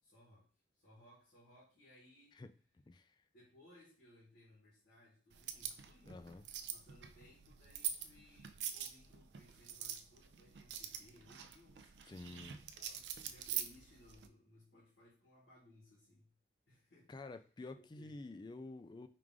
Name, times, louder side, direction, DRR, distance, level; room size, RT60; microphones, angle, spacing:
voice 1, 0.0-2.4 3.3-6.3 6.6-16.3 16.7-17.1 17.8-18.2, left 1 dB, 80° left, -6 dB, 1.6 m, -64 dB
sound 1, 5.3-14.3, right 9 dB, 75° right, 0.4 m, -45 dB
voice 2, 6.0-6.4 12.1-12.6 17.1-19.1, left 2 dB, 25° left, 10 dB, 0.3 m, -49 dB
4.8 x 2.5 x 3.6 m, 0.37 s
head